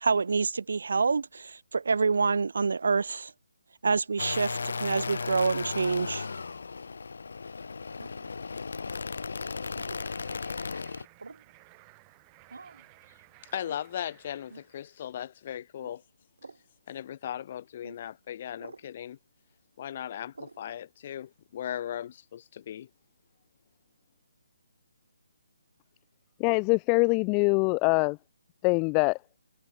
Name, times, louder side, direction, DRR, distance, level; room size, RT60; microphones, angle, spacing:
voice 1, 0.0-3.3 3.8-6.3, right 4 dB, 70° right, 0.3 m, -27 dB
sound 1, 4.2-11.0, left 4 dB, 75° left, 1.8 m, -35 dB
sound 2, 8.0-8.3 9.7-10.1 11.2-11.5 12.5-12.9 13.6-13.9 14.5-14.7 15.8-16.0 16.4-16.6 17.8-18.0 18.6-18.9 20.3-20.6, right 3 dB, 85° right, 6.4 m, -48 dB
sound 3, 10.0-15.0, right 40 dB or more, 20° right, 2.2 m, -57 dB
voice 2, 13.5-16.0 16.9-19.2 19.8-22.9, left 10 dB, 40° left, 2.0 m, -37 dB
voice 3, 26.4-28.2 28.6-29.2, left 35 dB, 20° left, 0.4 m, -23 dB
hypercardioid pair, 155°, 0 cm